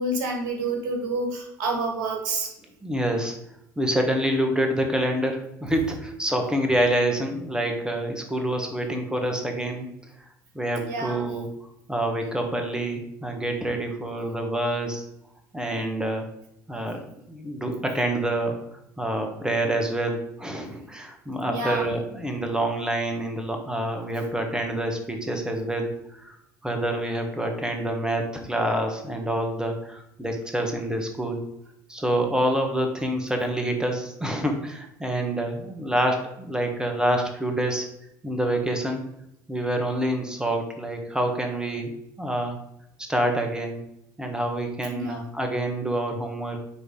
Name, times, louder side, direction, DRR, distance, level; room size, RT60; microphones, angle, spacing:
voice 1, 0.0-2.5 10.9-11.2 21.5-21.9 44.9-45.2, right 2 dB, 70° right, 2 dB, 1.6 m, -28 dB
voice 2, 2.8-3.3 3.8-9.9 10.5-11.5 11.9-15.1 15.5-16.3 16.7-17.0 17.3-18.6 19.0-26.4 26.6-31.4 31.9-37.9 38.2-39.0 39.5-41.9 42.2-42.6 43.1-43.8 44.2-46.6, right 1 dB, 5° right, 4 dB, 1.4 m, -27 dB
9.4 x 3.3 x 3.8 m, 0.80 s
hypercardioid pair, 65°, 10 cm